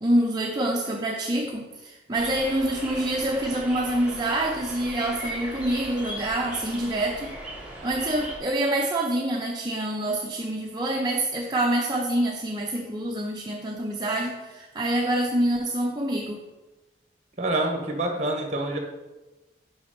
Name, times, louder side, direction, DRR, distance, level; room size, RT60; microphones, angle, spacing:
voice 1, 0.0-7.3 7.8-16.4, right 1 dB, 25° right, 0 dB, 0.6 m, -26 dB
sound 1, 2.1-8.4, right 1 dB, 10° right, 1.6 m, -38 dB
voice 2, 17.4-18.8, right 2 dB, 40° right, 2 dB, 1.4 m, -26 dB
6.1 x 5.2 x 5.7 m, 1.1 s
head